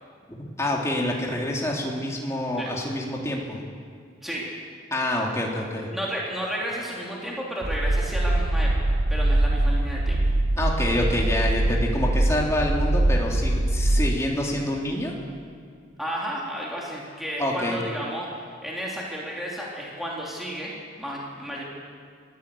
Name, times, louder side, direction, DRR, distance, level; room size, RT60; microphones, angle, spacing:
voice 1, 0.3-3.6 4.9-5.9 10.6-15.1 17.4-17.8, left 1 dB, 15° left, -2 dB, 3.0 m, -27 dB
voice 2, 5.9-10.2 16.0-20.7 21.0-21.6, equal, ahead, -4 dB, 3.1 m, -32 dB
sound 1, 7.6-14.2, right 1 dB, 80° right, 1.1 m, -23 dB
21.0 x 15.0 x 8.4 m, 2.1 s
head